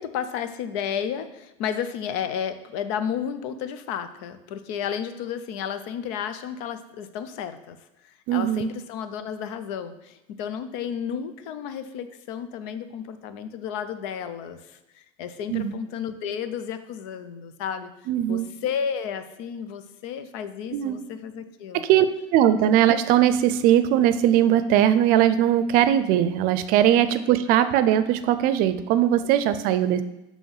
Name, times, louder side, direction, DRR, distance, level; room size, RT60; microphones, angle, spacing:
voice 1, 0.0-7.8 8.0-17.9 18.3-21.8 26.9-27.1, left 8 dB, 75° left, 11 dB, 0.7 m, -32 dB
voice 2, 8.3-8.7 15.5-15.7 18.1-18.5 20.7-21.0 21.9-22.1 22.3-30.0, right 11 dB, 60° right, 12 dB, 0.5 m, -20 dB
7.0 x 3.1 x 5.5 m, 0.95 s
supercardioid pair, 120°, 16 cm